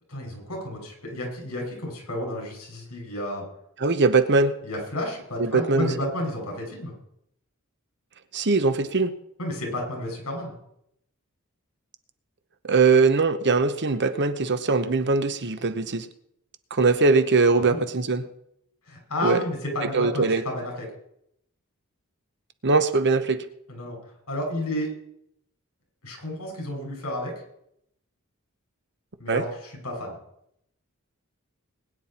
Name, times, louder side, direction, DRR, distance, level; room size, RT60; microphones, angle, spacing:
voice 1, 0.1-3.4 4.6-6.9 9.4-10.6 17.6-17.8 18.8-20.9 23.7-24.0 24.3-24.9 26.0-27.3 29.2-30.2, left 1 dB, 70° left, 0 dB, 6.3 m, -31 dB
voice 2, 3.8-4.5 5.4-5.9 8.3-9.1 12.6-16.1 16.7-18.2 19.2-19.4 19.9-20.4 22.6-23.4 29.3-29.4, right 4 dB, 55° right, 11 dB, 1.0 m, -21 dB
21.0 x 10.0 x 4.4 m, 0.76 s
head